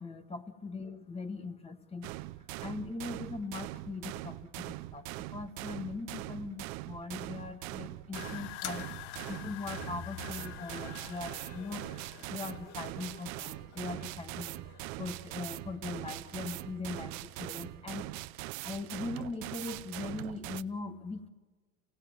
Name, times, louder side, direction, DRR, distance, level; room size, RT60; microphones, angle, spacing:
voice 1, 0.0-2.1 2.6-5.0 5.3-8.9 9.3-11.8 12.3-14.5 15.0-17.1 17.4-18.0 18.6-21.3, left 3 dB, 15° left, 9 dB, 1.4 m, -40 dB
sound 1, 2.0-20.6, right 19 dB, 65° right, 0.7 m, -42 dB
sound 2, 8.1-13.2, left 16 dB, 65° left, 0.7 m, -45 dB
Laughter, 10.3-17.8, left 5 dB, 40° left, 2.5 m, -56 dB
27.5 x 18.5 x 7.8 m, 1.4 s
cardioid pair, 150°, 42 cm